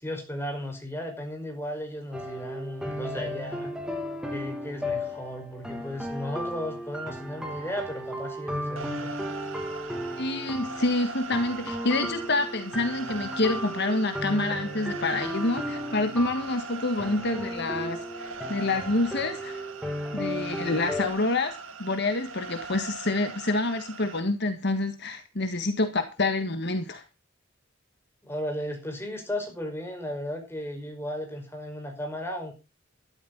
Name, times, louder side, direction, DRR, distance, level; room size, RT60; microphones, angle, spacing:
voice 1, 0.0-3.7 4.3-9.1 28.2-32.5, left 1 dB, 10° left, 3 dB, 5.3 m, -35 dB
sound 1, 2.1-21.1, equal, 5° right, 2.7 m, -35 dB
sound 2, 8.8-24.2, right 4 dB, 85° right, 2.2 m, -41 dB
voice 2, 10.2-19.6 20.1-27.0, left 2 dB, 55° left, 7 dB, 1.7 m, -27 dB
13.0 x 12.5 x 4.1 m, 0.29 s
head